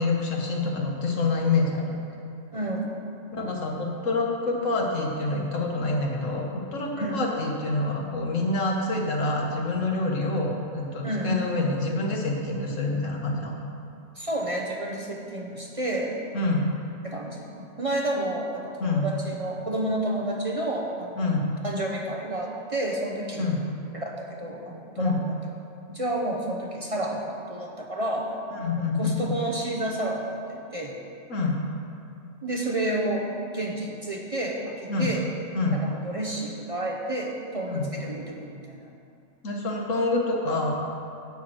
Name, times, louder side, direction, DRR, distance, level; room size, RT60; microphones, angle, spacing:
voice 1, 0.0-2.1 3.3-13.6 16.3-16.7 18.8-19.1 21.2-21.5 23.4-23.7 25.0-25.2 28.6-29.2 31.3-31.6 34.9-35.1 35.5-35.8 37.7-37.9 39.4-40.8, left 2 dB, 85° left, 0 dB, 1.7 m, -26 dB
voice 2, 2.5-3.0 7.0-7.2 11.0-11.4 14.2-16.2 17.0-21.2 21.6-23.5 23.9-25.1 25.9-28.4 28.8-31.0 32.4-35.3 35.7-38.9, right 1 dB, 35° right, 0 dB, 0.7 m, -30 dB
11.5 x 4.4 x 7.7 m, 2.5 s
omnidirectional pair, 1.3 m